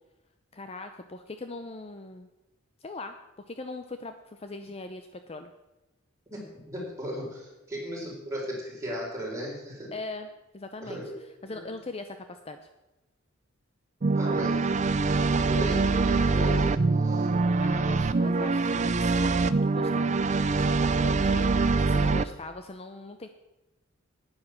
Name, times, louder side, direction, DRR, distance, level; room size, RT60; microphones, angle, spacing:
voice 1, 0.5-2.3 2.8-3.2 3.5-5.5 9.9-10.3 10.5-11.0 11.4-12.6 17.6-20.3 20.6-23.3, left 2 dB, 30° left, 8 dB, 0.6 m, -40 dB
voice 2, 6.3-9.9 10.8-11.0 11.5-11.7 14.1-14.7 15.1-16.7 17.0-17.3, equal, 15° right, -5 dB, 4.3 m, -36 dB
sound 1, 14.0-22.3, right 3 dB, 35° right, 0.4 m, -24 dB
9.9 x 9.7 x 5.9 m, 1.0 s
head